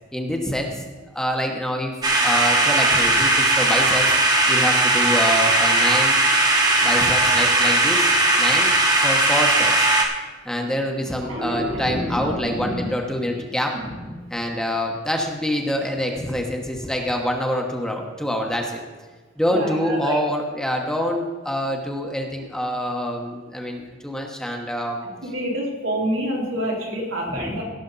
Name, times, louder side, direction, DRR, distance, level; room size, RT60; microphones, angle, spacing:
voice 1, 0.1-0.8 1.1-1.9 2.2-4.1 4.5-6.2 6.8-8.7 9.0-9.9 10.4-13.7 14.3-18.8 19.4-25.0 27.3-27.6, equal, 5° left, 1 dB, 1.0 m, -26 dB
sound 1, 2.0-10.0, right 2 dB, 20° right, 1.2 m, -18 dB
voice 2, 11.3-12.9 13.2-13.3 13.7-13.9 19.5-20.2 25.3-27.6, equal, 80° right, -3 dB, 3.1 m, -27 dB
17.0 x 6.8 x 4.0 m, 1.4 s
head